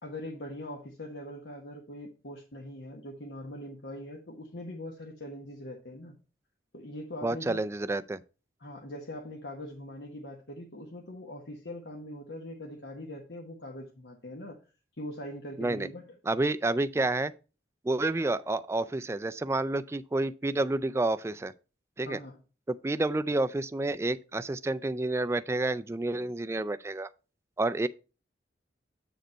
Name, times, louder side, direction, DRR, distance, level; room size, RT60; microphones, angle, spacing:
voice 1, 0.0-6.2 6.7-7.6 8.6-14.6 15.0-16.2 22.0-22.4, left 1 dB, 70° left, 1.2 m, -42 dB
voice 2, 7.2-8.2 15.6-15.9 16.3-17.3 17.8-21.5 22.0-22.2 22.7-27.1 27.6-27.9, right 2 dB, 15° right, 0.3 m, -29 dB
7.9 x 5.1 x 4.3 m
head